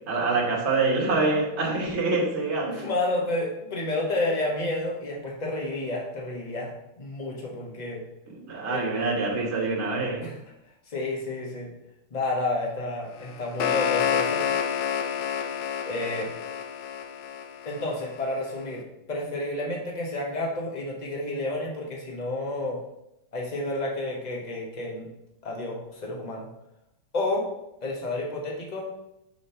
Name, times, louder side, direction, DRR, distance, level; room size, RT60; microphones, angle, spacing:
voice 1, 0.1-2.8 8.3-10.3, right 3 dB, 35° right, -2 dB, 1.4 m, -26 dB
voice 2, 2.7-8.0 8.7-8.8 10.2-10.3 10.9-11.7 12.1-14.4 15.8-16.3 17.6-22.8 23.3-25.1 25.4-26.5 27.1-27.5 27.8-28.9, left 2 dB, 30° left, -2 dB, 0.8 m, -30 dB
sound 1, 13.2-18.2, left 8 dB, 75° left, 1.1 m, -29 dB
5.9 x 3.1 x 5.5 m, 0.84 s
omnidirectional pair, 2.4 m